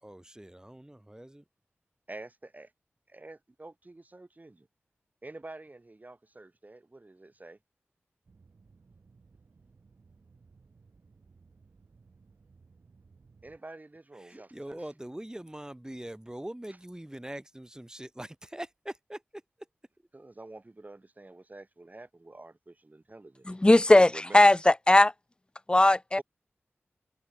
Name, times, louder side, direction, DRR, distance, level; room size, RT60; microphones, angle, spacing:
voice 1, 0.0-1.4 14.2-19.2, right 1 dB, 15° right, 4.4 m, -42 dB
voice 2, 2.1-2.7 3.1-4.7 5.2-7.6 13.4-14.9 20.1-23.5 23.9-24.4 26.1-26.2, right 2 dB, 35° right, 7.8 m, -48 dB
sound 1, 8.3-13.6, right 4 dB, 75° right, 4.9 m, -60 dB
voice 3, 23.5-25.1 25.7-26.2, left 1 dB, 20° left, 0.5 m, -19 dB
cardioid pair, 50°, 5 cm